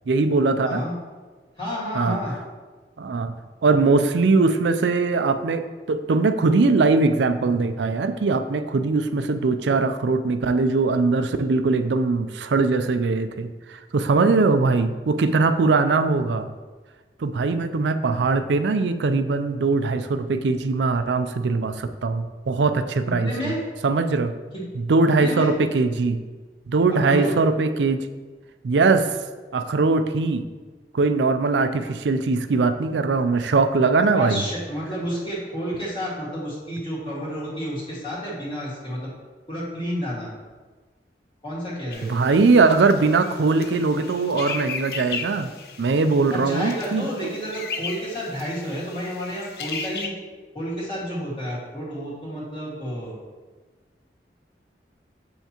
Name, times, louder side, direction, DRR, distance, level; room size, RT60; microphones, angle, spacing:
voice 1, 0.1-0.8 1.9-2.2 3.0-3.3 3.6-16.5 17.2-23.5 23.8-24.3 24.7-26.2 26.7-28.1 28.6-29.2 29.5-30.4 30.9-34.4 42.0-45.5 45.8-47.4, right 3 dB, 85° right, 10 dB, 0.4 m, -21 dB
voice 2, 1.6-2.3 23.0-23.6 24.5-24.6 25.2-25.5 27.0-27.4 34.1-39.1 39.5-40.3 41.4-42.1 46.3-50.1 50.5-53.2, equal, 30° left, -7 dB, 1.9 m, -30 dB
sound 1, 41.9-50.1, left 5 dB, 60° left, 0.5 m, -36 dB
7.2 x 5.6 x 2.9 m, 1.3 s
head